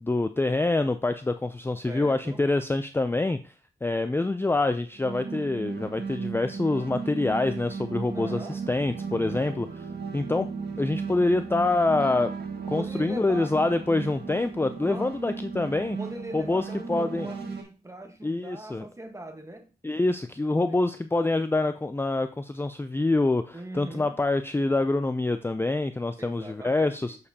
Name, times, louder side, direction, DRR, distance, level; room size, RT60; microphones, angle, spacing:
voice 1, 0.0-3.5 3.8-9.7 10.1-10.5 10.8-12.3 12.7-16.0 16.3-17.3 18.2-18.8 19.8-27.2, left 2 dB, 15° left, 0.4 m, -26 dB
voice 2, 1.8-2.4 8.1-8.6 9.1-9.6 12.8-13.6 14.8-15.2 16.0-19.7 20.5-20.8 23.5-24.2 26.2-27.2, right 1 dB, 15° right, 1.3 m, -41 dB
sound 1, 4.9-17.6, right 5 dB, 80° right, 1.8 m, -36 dB
sound 2, 8.6-15.2, right 5 dB, 60° right, 0.8 m, -46 dB
7.1 x 6.6 x 2.8 m
cardioid pair, 55°, 17 cm